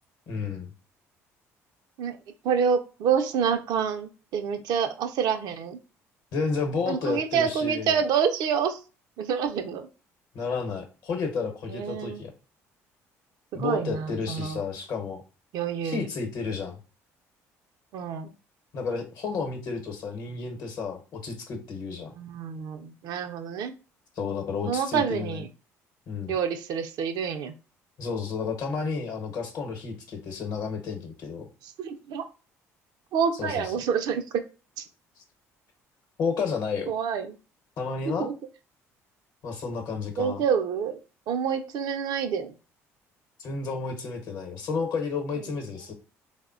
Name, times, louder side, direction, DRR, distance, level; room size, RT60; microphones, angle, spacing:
voice 1, 0.3-0.7 6.3-8.0 10.3-12.3 13.5-15.2 15.8-16.8 18.7-22.1 24.2-25.4 26.1-26.3 28.0-31.4 33.4-33.7 36.2-36.9 37.8-38.3 39.4-40.4 43.4-45.9, left 5 dB, 60° left, 4 dB, 0.8 m, -31 dB
voice 2, 2.4-5.8 6.9-8.8 9.2-9.9 11.7-12.2 13.5-14.6 15.5-16.1 17.9-18.3 22.1-23.7 24.7-25.5 26.3-27.5 31.6-32.2 33.1-34.4 34.8-34.9 36.9-37.4 38.1-38.3 40.2-41.0 41.3-42.5 45.4-45.6, right 7 dB, 65° right, 7 dB, 0.4 m, -27 dB
3.5 x 2.1 x 2.4 m, 0.33 s
hypercardioid pair, 60°, 7 cm